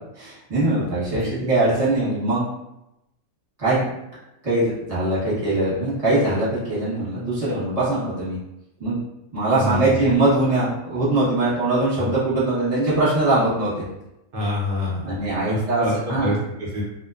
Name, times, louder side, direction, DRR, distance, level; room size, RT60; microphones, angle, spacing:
voice 1, 0.2-2.5 3.6-3.9 4.4-8.4 8.8-9.0 9.3-13.7 15.0-16.3, right 2 dB, 30° right, -9 dB, 1.0 m, -22 dB
voice 2, 9.6-10.0 11.9-12.1 14.3-16.8, left 1 dB, 55° right, -5 dB, 0.6 m, -27 dB
2.5 x 2.2 x 2.3 m, 0.89 s
omnidirectional pair, 1.4 m